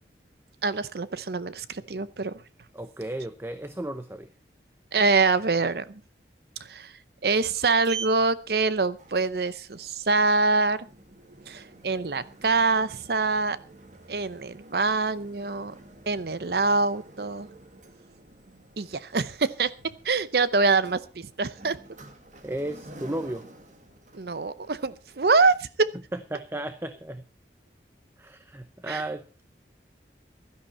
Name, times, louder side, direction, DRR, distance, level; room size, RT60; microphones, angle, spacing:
voice 1, 0.6-2.3 4.9-6.0 6.7-6.9 7.2-10.8 11.5-13.6 14.1-15.7 16.1-17.5 18.8-19.7 20.0-21.8 24.1-25.9 28.9-29.0, right 4 dB, 60° right, 15 dB, 0.7 m, -25 dB
voice 2, 2.7-4.3 22.4-23.5 26.1-27.2 28.2-29.3, right 1 dB, 15° right, 10 dB, 0.7 m, -34 dB
Sliding door, 7.2-25.5, right 5 dB, 45° right, 1.9 m, -47 dB
16.5 x 12.5 x 4.3 m, 0.33 s
head